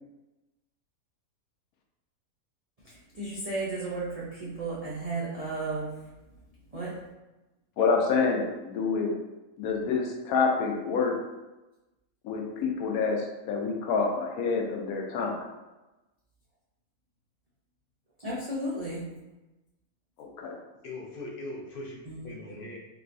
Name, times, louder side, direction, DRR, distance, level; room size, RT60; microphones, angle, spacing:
voice 1, 2.8-5.9 6.7-6.9 18.2-19.1 22.1-22.6, right 2 dB, 80° right, -7 dB, 0.3 m, -34 dB
voice 2, 7.8-9.1 9.6-11.2 12.2-15.4 20.2-20.6, left 4 dB, 80° left, 1 dB, 1.0 m, -27 dB
voice 3, 20.8-22.8, left 2 dB, 60° left, -3 dB, 0.6 m, -40 dB
3.8 x 2.3 x 2.5 m, 1.0 s
omnidirectional pair, 1.5 m